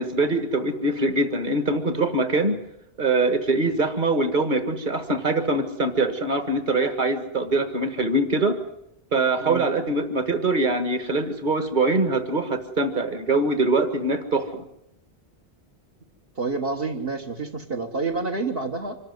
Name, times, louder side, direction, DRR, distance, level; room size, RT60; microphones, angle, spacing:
voice 1, 0.0-2.5 3.0-8.6 9.1-14.6, right 2 dB, 50° right, 9 dB, 1.9 m, -23 dB
voice 2, 16.3-19.0, right 3 dB, 65° right, 1 dB, 1.7 m, -28 dB
25.5 x 13.0 x 9.5 m, 0.79 s
omnidirectional pair, 1.1 m